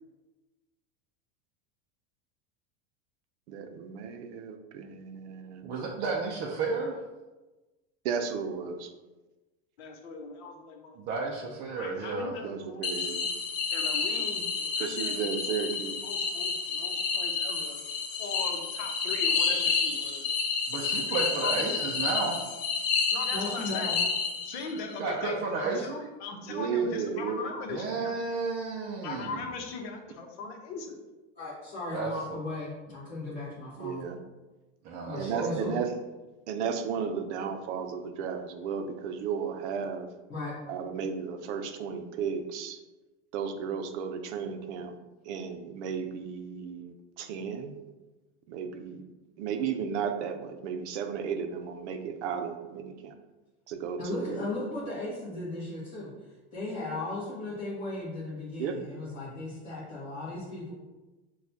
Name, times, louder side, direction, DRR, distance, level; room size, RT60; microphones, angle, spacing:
voice 1, 3.5-5.7 8.0-8.9 12.4-13.3 14.8-16.0 26.4-27.4 33.8-34.2 35.2-35.9 36.5-40.1 40.7-42.8 43.3-45.0 45.2-47.7 48.5-49.1 49.4-53.1 53.7-54.5 58.6-58.8, right 6 dB, 85° right, 7 dB, 0.6 m, -34 dB
voice 2, 5.6-7.0 11.0-12.3 20.7-22.4 24.9-26.0 27.7-29.5 31.9-32.4 34.8-35.7, right 4 dB, 30° right, -3 dB, 0.4 m, -32 dB
voice 3, 9.8-11.0 11.7-13.1 13.7-15.3 16.0-17.8 18.2-20.2 20.8-21.9 23.1-23.9 24.4-28.2 29.0-31.0, left 4 dB, 65° left, 3 dB, 0.9 m, -40 dB
sound 1, 12.8-24.8, left 5 dB, 40° left, 0.6 m, -30 dB
voice 4, 23.3-24.0 31.4-34.0 35.0-35.8 40.3-40.6 54.0-56.1 56.5-60.7, left 2 dB, 25° left, -9 dB, 1.1 m, -36 dB
6.2 x 2.3 x 2.7 m, 1.1 s
supercardioid pair, 160°, 34 cm